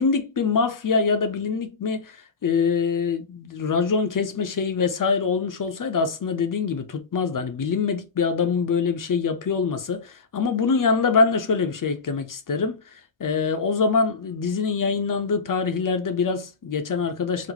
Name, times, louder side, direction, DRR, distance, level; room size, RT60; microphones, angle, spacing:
voice 1, 0.0-2.2 2.4-12.8 13.2-17.5, left 5 dB, 55° left, 0.6 m, -24 dB
3.9 x 2.0 x 3.0 m
wide cardioid pair, 80°, 38 cm